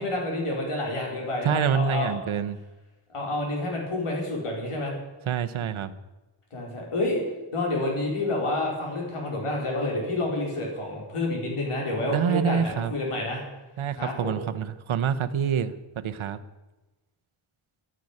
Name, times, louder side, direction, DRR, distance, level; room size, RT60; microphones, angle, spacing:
voice 1, 0.0-2.1 3.1-4.9 6.5-7.2 7.5-13.4 14.0-14.3, left 2 dB, 85° left, -1 dB, 4.7 m, -29 dB
voice 2, 1.4-2.6 5.3-5.9 12.1-12.9 13.8-16.4, right 7 dB, 70° right, 10 dB, 0.9 m, -26 dB
11.5 x 10.5 x 9.9 m, 1.1 s
wide cardioid pair, 170°, 50 cm